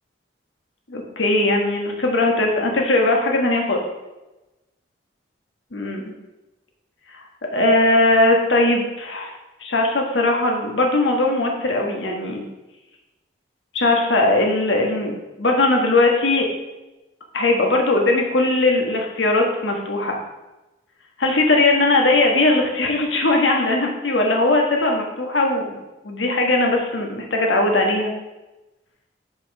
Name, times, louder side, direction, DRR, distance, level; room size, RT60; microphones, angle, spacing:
voice 1, 0.9-3.8 5.7-6.0 7.5-9.3 9.6-12.4 13.7-16.5 17.3-20.2 21.2-28.1, left 2 dB, 80° left, 1 dB, 1.4 m, -19 dB
5.6 x 5.5 x 5.3 m, 1.0 s
head